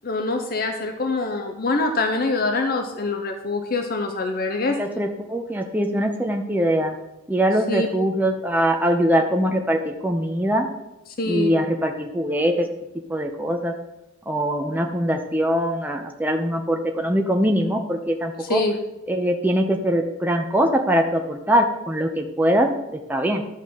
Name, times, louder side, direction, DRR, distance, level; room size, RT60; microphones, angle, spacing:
voice 1, 0.0-4.8 7.7-7.9 11.2-11.6 18.4-18.7, left 3 dB, 45° left, 4 dB, 0.8 m, -24 dB
voice 2, 4.7-6.9 7.3-10.7 11.2-12.6 13.1-13.7 14.3-18.6 19.1-23.4, equal, 10° right, 2 dB, 0.7 m, -22 dB
11.5 x 3.9 x 7.5 m, 0.95 s
head